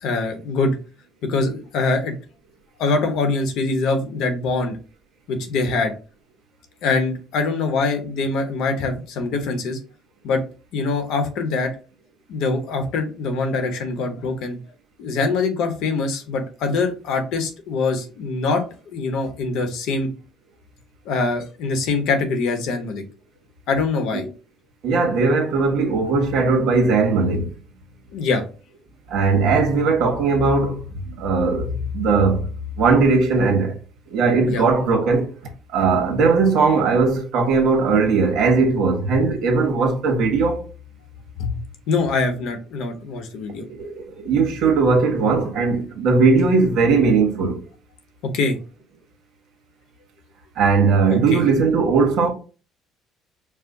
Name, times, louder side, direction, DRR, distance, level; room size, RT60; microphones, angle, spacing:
voice 1, 0.0-0.8 1.3-2.1 2.8-4.8 5.3-5.9 6.8-9.8 10.2-10.4 10.7-11.7 12.3-14.6 15.0-20.1 21.1-23.0 23.7-24.2 28.1-28.4 34.4-34.6 41.4-41.6 41.9-43.6 48.3-48.6 51.1-51.4, left 3 dB, 70° left, 1.0 m, -23 dB
voice 2, 24.8-27.5 29.1-32.5 32.8-33.7 34.1-35.3 35.7-40.7 43.6-47.6 50.5-52.3, right 4 dB, 65° right, 1.3 m, -19 dB
4.8 x 2.2 x 3.8 m
cardioid pair, 145°, 0 cm